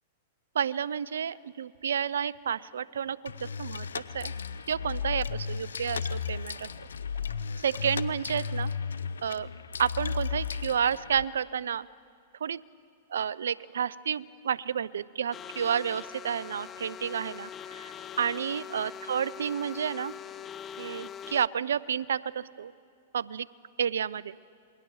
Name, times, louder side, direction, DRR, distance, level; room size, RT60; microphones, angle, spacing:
voice 1, 0.5-4.3 4.7-6.7 7.6-8.7 9.2-9.5 9.8-11.9 12.4-12.6 13.1-17.9 18.2-20.1 20.8-22.7 23.1-23.5 23.8-24.4, right 8 dB, 80° right, 20 dB, 0.5 m, -30 dB
sound 1, 1.7-1.8 2.3-2.4 2.9-3.0 3.5-3.6 4.1-4.2 4.7-4.8 5.3-5.4 5.9-6.0 6.5-6.6 7.1-7.2 7.7-7.8 8.3-8.4, right 10 dB, 60° right, 7.4 m, -59 dB
sound 2, 3.3-11.3, left 6 dB, 85° left, 0.6 m, -34 dB
sound 3, 15.3-21.5, left 8 dB, 25° left, 0.6 m, -42 dB
27.5 x 21.5 x 4.7 m, 2.4 s
hypercardioid pair, 115°, 0 cm